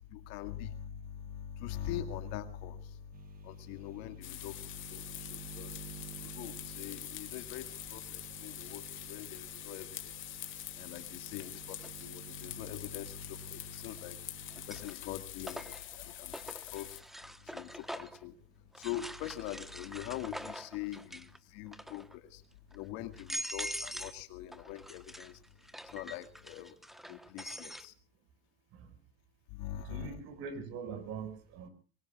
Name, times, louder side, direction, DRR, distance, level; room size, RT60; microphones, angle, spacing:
voice 1, 0.1-10.4 10.7-17.0 17.4-18.3 18.8-22.4 22.7-25.4 25.8-26.7 27.1-27.9 29.5-30.1, left 12 dB, 60° left, 8 dB, 2.1 m, -43 dB
sound 1, 3.1-14.8, right 8 dB, 30° right, 1.6 m, -51 dB
sound 2, 4.2-17.0, left 14 dB, 40° left, 2.5 m, -45 dB
sound 3, 11.8-11.9 13.6-14.1 14.5-18.2 18.7-21.4 21.7-22.2 22.7-22.8 23.1-24.2 24.5-27.9, equal, ahead, 1.0 m, -44 dB
voice 2, 29.9-31.7, right 5 dB, 50° right, 11 dB, 5.4 m, -42 dB
25.5 x 23.0 x 2.4 m, 0.38 s
supercardioid pair, 130°, 30 cm